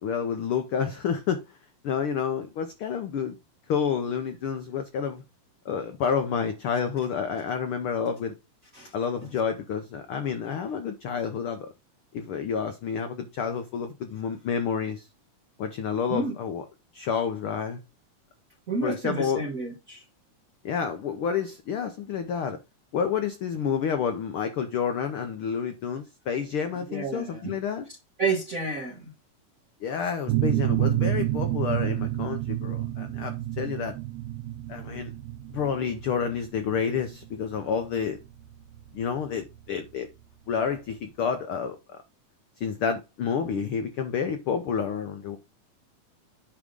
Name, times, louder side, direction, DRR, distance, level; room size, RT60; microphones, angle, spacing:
voice 1, 0.0-1.4 1.8-3.4 3.7-5.2 5.6-8.4 8.9-11.7 12.1-15.1 15.6-16.6 16.9-17.8 18.8-19.4 20.6-22.6 22.9-27.9 29.8-34.0 34.7-35.1 35.5-38.2 38.9-40.1 40.5-41.8 42.6-45.4, left 7 dB, 80° left, 1.2 m, -29 dB
voice 2, 18.7-20.0 26.9-27.6 28.2-29.1, right 3 dB, 45° right, 1.1 m, -30 dB
sound 1, 30.3-39.7, right 14 dB, 75° right, 1.9 m, -29 dB
9.8 x 3.6 x 5.2 m
omnidirectional pair, 3.5 m